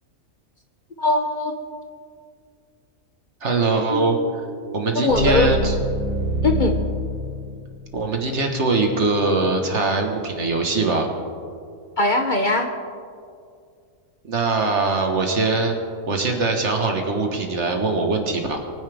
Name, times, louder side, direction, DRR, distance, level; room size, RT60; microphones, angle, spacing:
voice 1, 1.0-1.5 4.9-5.5 6.4-6.8 12.0-12.7, left 2 dB, 40° left, 4 dB, 0.9 m, -20 dB
voice 2, 3.4-4.2 4.7-5.7 7.9-11.1 14.2-15.8 16.1-18.6, right 3 dB, 60° right, 3 dB, 1.7 m, -22 dB
sound 1, 3.9-8.0, equal, 30° right, 3.3 m, -26 dB
22.5 x 9.8 x 3.5 m, 2.3 s
omnidirectional pair, 1.4 m